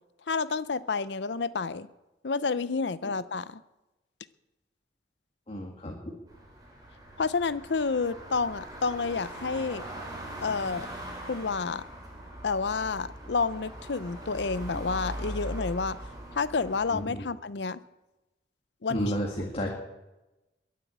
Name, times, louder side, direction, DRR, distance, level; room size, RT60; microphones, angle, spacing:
voice 1, 0.3-1.9 2.2-3.6 7.2-9.8 10.4-10.9 11.3-11.8 12.4-16.0 16.4-17.8 18.8-19.1, left 4 dB, 75° left, 16 dB, 0.7 m, -29 dB
voice 2, 5.5-6.0 16.9-17.2 18.9-19.8, equal, 35° left, 0 dB, 2.0 m, -32 dB
sound 1, 6.3-17.0, right 1 dB, 20° right, 4.4 m, -41 dB
22.0 x 7.6 x 8.1 m, 1.0 s
head